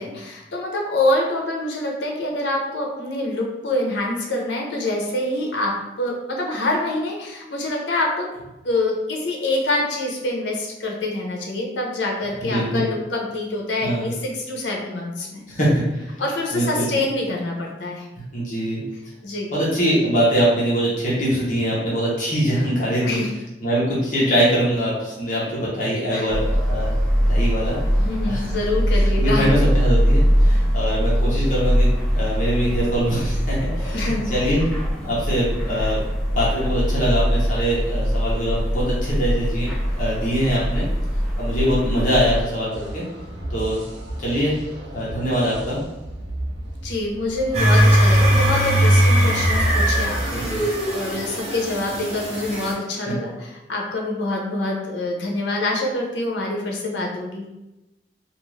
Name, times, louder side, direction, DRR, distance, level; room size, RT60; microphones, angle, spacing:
voice 1, 0.0-8.3 8.6-15.4 16.2-18.1 19.2-19.5 23.0-23.3 26.1-26.3 28.0-29.5 33.9-34.3 46.8-57.4, left 2 dB, 80° left, 0 dB, 0.7 m, -26 dB
voice 2, 12.4-12.8 13.8-14.1 15.5-16.2 16.5-17.0 18.3-18.8 19.5-23.2 23.6-27.8 28.3-28.5 29.2-31.9 32.1-34.7 35.0-36.0 36.3-40.9 41.4-43.1 43.5-43.8 44.2-44.5 44.9-45.8 50.3-50.6 53.1-53.2, equal, 45° left, -6 dB, 0.8 m, -23 dB
sound 1, 26.3-42.4, equal, 5° left, 0.4 m, -22 dB
sound 2, 42.7-50.2, right 1 dB, 75° right, 0.7 m, -34 dB
sound 3, 47.5-52.7, equal, 35° right, 0.8 m, -19 dB
2.5 x 2.3 x 3.1 m, 0.97 s
head